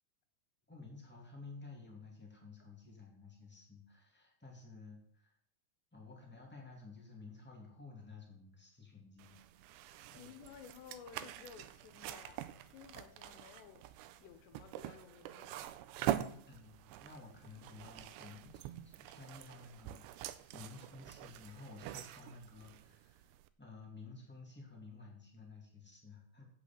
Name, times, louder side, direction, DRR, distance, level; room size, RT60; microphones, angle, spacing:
voice 1, 0.7-5.4 5.9-9.7 10.1-10.5 16.5-26.5, left 3 dB, 10° left, -1 dB, 0.6 m, -53 dB
sound 1, 9.2-23.5, right 13 dB, 85° right, 2.8 m, -45 dB
voice 2, 10.1-13.9 14.2-15.7, left 8 dB, 80° left, 8 dB, 3.0 m, -55 dB
8.2 x 8.0 x 7.2 m, 0.66 s
omnidirectional pair, 5.0 m